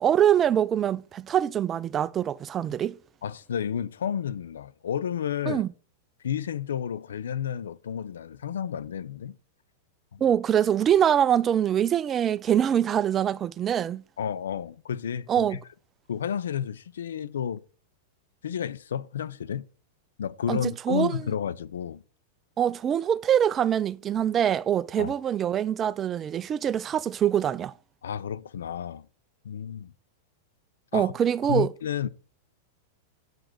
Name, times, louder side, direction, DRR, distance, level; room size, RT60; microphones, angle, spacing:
voice 1, 0.0-3.0 5.5-5.7 10.2-14.0 15.3-15.6 20.5-21.2 22.6-27.7 30.9-31.7, right 9 dB, 25° right, 0.4 m, -24 dB
voice 2, 3.2-5.6 6.2-9.3 10.1-10.2 14.2-15.6 16.1-17.6 18.4-19.6 20.2-22.0 25.0-25.1 28.0-29.1 29.4-29.9 30.9-31.1 31.5-32.1, left 8 dB, 85° left, 0.5 m, -31 dB
7.6 x 5.0 x 6.0 m
hypercardioid pair, 120°, 0 cm